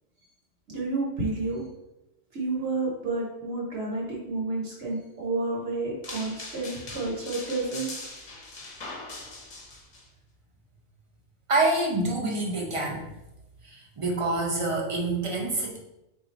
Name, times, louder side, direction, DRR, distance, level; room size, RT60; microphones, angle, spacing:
voice 1, 0.7-1.6 2.3-7.9, right 3 dB, 65° right, -3 dB, 1.1 m, -30 dB
sound 1, 6.0-10.0, left 2 dB, 40° left, 0.7 m, -41 dB
voice 2, 11.5-13.0 13.7-15.8, right 2 dB, 35° right, -1 dB, 0.6 m, -26 dB
3.6 x 2.5 x 4.0 m, 0.94 s
omnidirectional pair, 1.3 m